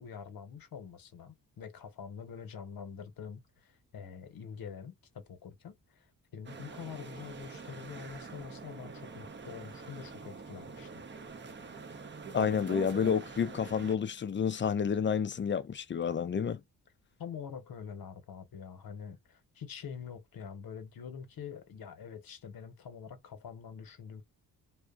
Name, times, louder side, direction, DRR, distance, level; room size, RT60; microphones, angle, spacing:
voice 1, 0.0-6.1 6.3-11.0 17.2-24.2, left 7 dB, 65° left, 1.0 m, -45 dB
sound 1, 6.4-14.0, right 4 dB, 30° right, 0.7 m, -45 dB
voice 2, 12.3-16.6, left 7 dB, 30° left, 0.4 m, -30 dB
2.4 x 2.1 x 2.4 m
cardioid pair, 60°, 38 cm